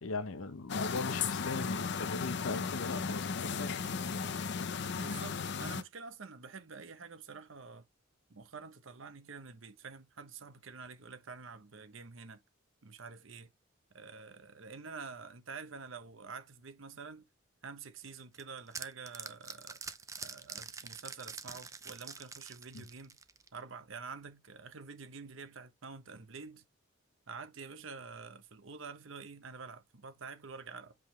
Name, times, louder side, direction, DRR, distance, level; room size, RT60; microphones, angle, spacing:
voice 1, 0.0-3.7 22.7-22.8, left 3 dB, 90° left, 0.8 m, -39 dB
sound 1, 0.7-5.8, left 5 dB, 55° left, 0.6 m, -35 dB
voice 2, 5.0-7.8 8.3-12.4 12.8-13.5 13.9-17.3 17.6-19.8 20.2-23.2 23.5-26.6 27.3-30.9, right 5 dB, 70° right, 0.9 m, -48 dB
sound 2, 18.0-23.6, right 5 dB, 15° right, 0.5 m, -46 dB
7.7 x 3.7 x 3.2 m
head